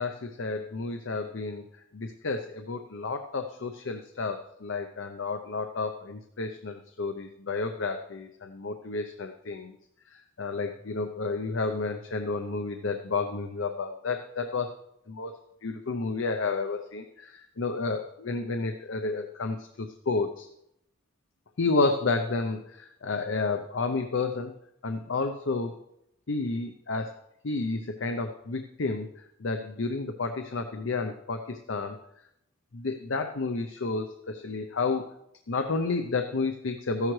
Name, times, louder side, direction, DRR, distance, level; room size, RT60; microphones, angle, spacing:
voice 1, 0.0-1.6 1.9-9.8 10.1-14.7 15.1-15.3 15.6-20.5 21.6-24.5 24.8-25.8 26.3-27.1 27.4-32.0 32.7-35.1 35.5-37.1, left 3 dB, 65° left, 6 dB, 0.7 m, -31 dB
14.0 x 10.5 x 3.2 m, 0.79 s
head